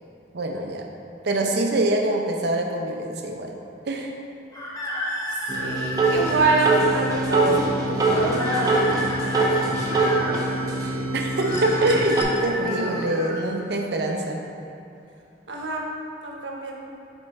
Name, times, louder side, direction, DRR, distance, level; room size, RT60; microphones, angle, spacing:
voice 1, 0.3-0.9 1.2-3.6 3.9-4.1 11.1-14.4, right 1 dB, 65° right, 2 dB, 0.6 m, -24 dB
sound 1, 4.5-6.8 8.1-10.3 11.3-13.4, equal, 20° left, 0.8 m, -31 dB
voice 2, 5.3-9.9 10.2-10.8 12.8-13.0 15.5-16.7, right 2 dB, 90° right, -1 dB, 0.9 m, -27 dB
sound 2, 5.5-12.2, right 2 dB, 20° right, 0.7 m, -24 dB
sound 3, 11.4-12.4 13.9-14.0, left 3 dB, 70° left, 0.8 m, -40 dB
5.5 x 4.7 x 4.1 m, 2.8 s
head